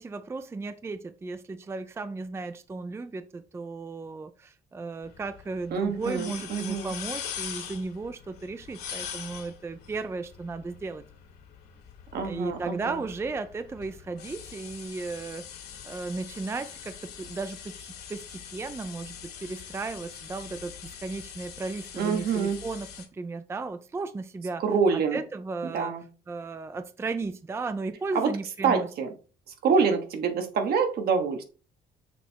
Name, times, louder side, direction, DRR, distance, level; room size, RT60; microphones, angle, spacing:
voice 1, 0.0-11.0 12.2-15.4 15.8-24.6 24.9-25.9 26.3-28.9, right 3 dB, 15° right, 0.4 m, -35 dB
sound 1, 5.0-23.1, left 8 dB, 75° left, 1.9 m, -43 dB
voice 2, 5.7-6.9 12.1-13.0 22.0-22.6 24.6-25.2 25.7-26.0 28.1-28.3 28.6-29.1 29.6-31.4, right 5 dB, 70° right, 1.4 m, -26 dB
6.4 x 3.4 x 4.5 m
cardioid pair, 110°, 17 cm